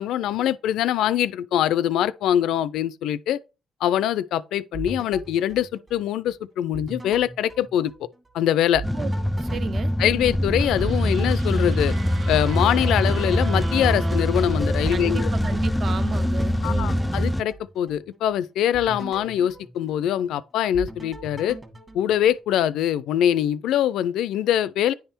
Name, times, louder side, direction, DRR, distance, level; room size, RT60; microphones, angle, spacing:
voice 1, 0.0-3.4 3.8-7.9 8.3-8.8 10.0-11.9 12.3-15.3 16.6-21.6 21.9-24.9, left 11 dB, 85° left, 0.4 m, -23 dB
sound 1, 4.7-6.3 6.7-8.4 8.7-12.4 12.8-14.4 14.8-18.3 18.7-20.4 20.7-22.7, right 3 dB, 25° right, 1.4 m, -40 dB
sound 2, 8.8-17.4, equal, 5° left, 0.3 m, -24 dB
voice 2, 9.4-9.9 14.9-17.0, right 5 dB, 50° right, 0.5 m, -34 dB
sound 3, 10.6-15.9, right 4 dB, 70° right, 1.4 m, -39 dB
9.7 x 3.5 x 4.4 m
cardioid pair, 90°, 0 cm